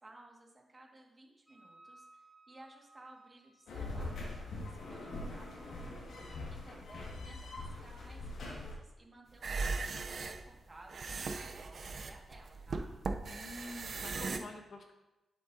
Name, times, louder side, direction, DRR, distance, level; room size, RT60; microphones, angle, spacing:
voice 1, 0.0-6.2 6.6-12.9, right 2 dB, 25° right, -1 dB, 2.1 m, -58 dB
Wind instrument woodwind instrument, 1.5-6.8, right 2 dB, 5° right, 2.8 m, -62 dB
sound 1, 3.7-8.7, left 2 dB, 75° left, 2.1 m, -43 dB
sound 2, 9.3-14.4, right 4 dB, 50° right, 0.7 m, -38 dB
voice 2, 13.3-14.9, left 2 dB, 55° left, 3 dB, 1.4 m, -48 dB
11.0 x 7.7 x 2.9 m, 1.0 s
cardioid pair, 110°, 0 cm